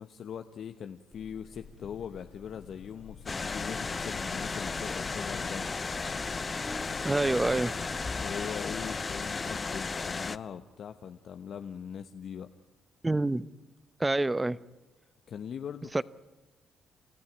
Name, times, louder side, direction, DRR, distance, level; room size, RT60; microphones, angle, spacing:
voice 1, 0.0-5.7 8.2-12.5 15.3-16.0, left 8 dB, 60° left, 1.1 m, -41 dB
sound 1, 1.1-8.4, left 1 dB, 10° left, 2.5 m, -50 dB
sound 2, 1.6-9.6, left 8 dB, 85° left, 4.5 m, -50 dB
sound 3, 3.3-10.4, left 4 dB, 30° left, 0.7 m, -34 dB
voice 2, 7.0-7.8 13.0-13.5 14.0-14.6 15.9-16.0, right 2 dB, 15° right, 0.8 m, -27 dB
29.0 x 14.0 x 9.9 m
cardioid pair, 90°, 0 cm